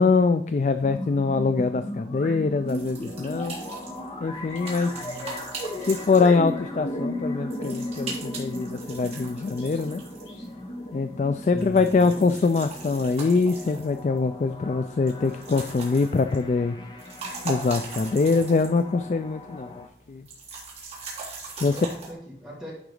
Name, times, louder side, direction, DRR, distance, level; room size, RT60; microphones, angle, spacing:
voice 1, 0.0-3.6 4.2-4.9 5.8-10.0 10.9-16.8 17.4-20.2 21.6-21.9, left 4 dB, 40° left, 10 dB, 0.3 m, -23 dB
sound 1, 0.8-19.9, left 1 dB, 25° left, 1.0 m, -36 dB
sound 2, 2.0-2.4 4.9-5.1 5.7-5.8 6.2-6.8 9.5-9.8 10.2-10.5, left 3 dB, 80° left, 2.5 m, -45 dB
sound 3, 2.7-6.7 7.5-10.5 11.4-14.2 15.1-16.5 16.8-18.9 19.2-19.3 20.3-22.1, right 3 dB, 35° right, 3.2 m, -40 dB
voice 2, 4.9-5.3 11.5-12.1 21.7-22.7, equal, 5° right, -7 dB, 2.2 m, -39 dB
11.0 x 3.9 x 4.9 m, 0.64 s
head